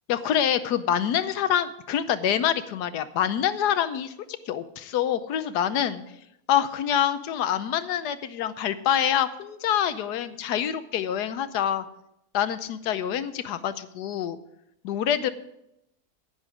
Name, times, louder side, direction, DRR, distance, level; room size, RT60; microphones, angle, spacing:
voice 1, 0.1-4.1 4.5-6.0 6.5-11.8 12.3-14.4 14.8-15.3, left 9 dB, 90° left, 12 dB, 1.3 m, -26 dB
10.5 x 9.9 x 5.0 m, 0.80 s
omnidirectional pair, 1.7 m